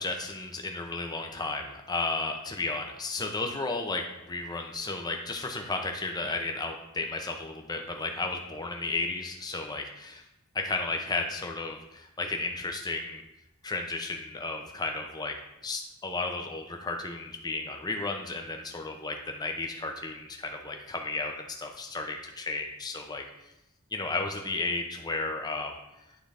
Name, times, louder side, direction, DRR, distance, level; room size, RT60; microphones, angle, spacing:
voice 1, 0.0-10.2 10.5-13.2 13.6-15.4 15.6-23.5 23.9-25.7, left 3 dB, 20° left, 3 dB, 0.7 m, -33 dB
9.6 x 3.8 x 3.4 m, 0.90 s
head